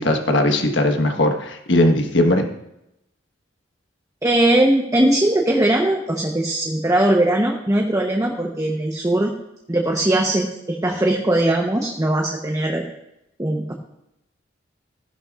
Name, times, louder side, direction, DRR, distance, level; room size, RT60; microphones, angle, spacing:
voice 1, 0.0-2.4, left 1 dB, 75° left, 4 dB, 1.4 m, -18 dB
voice 2, 4.2-9.3 9.7-12.8 13.4-13.7, right 1 dB, 15° right, 1 dB, 0.9 m, -20 dB
15.0 x 11.0 x 2.5 m, 0.85 s
head